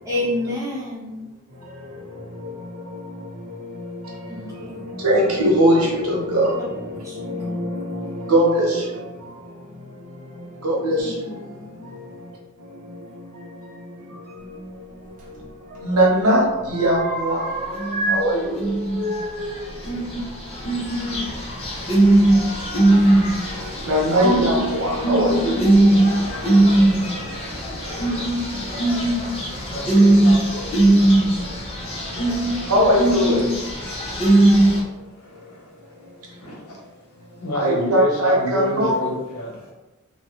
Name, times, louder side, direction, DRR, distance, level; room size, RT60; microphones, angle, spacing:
voice 1, 0.0-1.2 4.2-4.8 7.0-7.4 11.0-11.9, left 1 dB, 15° right, -9 dB, 1.3 m, -29 dB
voice 2, 5.0-6.5 7.3-7.9 8.3-8.8 10.6-11.0 15.8-17.4 18.1-18.6 23.9-25.6 32.7-33.4 37.6-38.9, equal, 90° right, -3 dB, 0.9 m, -19 dB
sound 1, 15.2-16.1 16.4-18.2 18.5-21.0 22.1-22.2 23.1-23.7 24.0-24.4, right 1 dB, 35° right, 0.6 m, -30 dB
sound 2, 17.7-18.2 18.6-19.1 19.6-34.8, right 1 dB, 25° left, 0.6 m, -19 dB
voice 3, 29.6-30.7 31.4-31.5 32.5-32.7 33.8-34.5 35.0-37.0 37.3-39.7, right 1 dB, 75° left, -2 dB, 0.9 m, -30 dB
3.1 x 2.2 x 3.0 m, 1.1 s
head